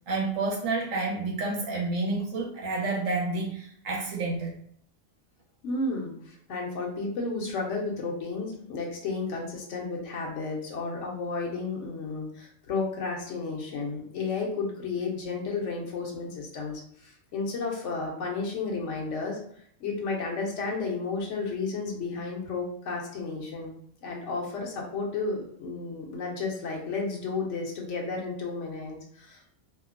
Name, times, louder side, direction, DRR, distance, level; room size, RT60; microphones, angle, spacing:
voice 1, 0.1-4.5, right 3 dB, 85° right, -2 dB, 1.2 m, -29 dB
voice 2, 5.6-19.4 19.8-23.7 24.0-29.5, left 4 dB, 70° left, -1 dB, 1.0 m, -32 dB
2.8 x 2.0 x 2.4 m, 0.65 s
omnidirectional pair, 1.3 m